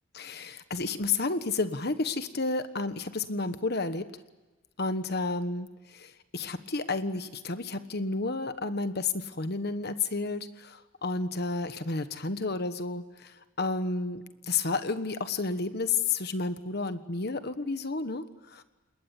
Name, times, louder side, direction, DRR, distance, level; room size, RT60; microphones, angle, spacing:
voice 1, 0.1-4.1 4.8-18.6, left 3 dB, 55° left, 10 dB, 1.3 m, -31 dB
29.0 x 21.0 x 8.4 m, 1.2 s
head